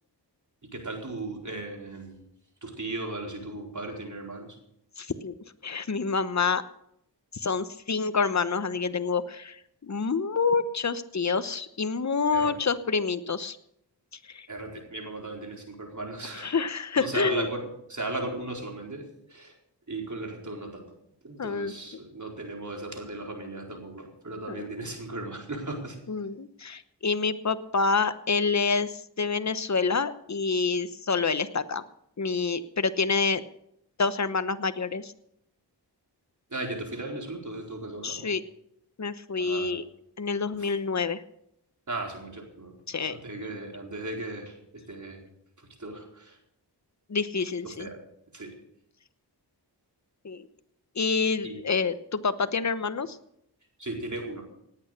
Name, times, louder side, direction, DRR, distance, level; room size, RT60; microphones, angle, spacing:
voice 1, 0.7-2.2 2.6-4.6 12.3-12.6 14.5-16.5 17.0-19.0 19.3-19.5 19.9-20.9 21.2-26.0 36.5-38.3 39.4-39.7 40.5-40.7 41.9-42.7 43.1-45.2 45.6-46.4 47.6-48.0 48.3-48.5 51.4-51.6 53.8-54.4, right 2 dB, 45° right, 1 dB, 4.3 m, -36 dB
voice 2, 5.0-5.3 5.6-6.6 7.3-13.6 14.3-14.5 16.3-17.5 21.4-21.7 24.5-24.7 26.1-31.8 32.2-33.4 34.0-35.1 38.0-38.4 39.0-39.8 40.2-41.2 42.9-43.2 43.5-43.6 47.1-47.9 50.2-50.5 51.0-53.2, left 4 dB, 40° left, 13 dB, 1.0 m, -27 dB
18.5 x 8.9 x 6.6 m, 0.77 s
cardioid pair, 50°, 42 cm